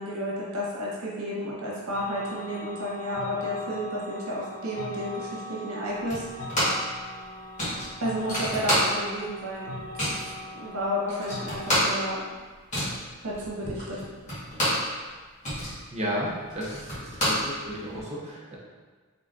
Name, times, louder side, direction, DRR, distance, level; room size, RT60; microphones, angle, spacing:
voice 1, 0.0-6.2 8.0-9.8 10.6-12.2 13.2-14.0, equal, 80° right, -5 dB, 1.0 m, -31 dB
sound 1, 1.9-11.6, left 2 dB, 65° left, 0.5 m, -41 dB
sound 2, 6.1-6.9 7.2-7.3 7.6-9.3 9.5-10.3 10.8-10.9 11.1-14.9 15.2-18.0, equal, 35° left, 1.4 m, -28 dB
voice 2, 15.6-18.5, equal, 30° right, -5 dB, 0.7 m, -34 dB
3.8 x 3.4 x 2.5 m, 1.4 s
head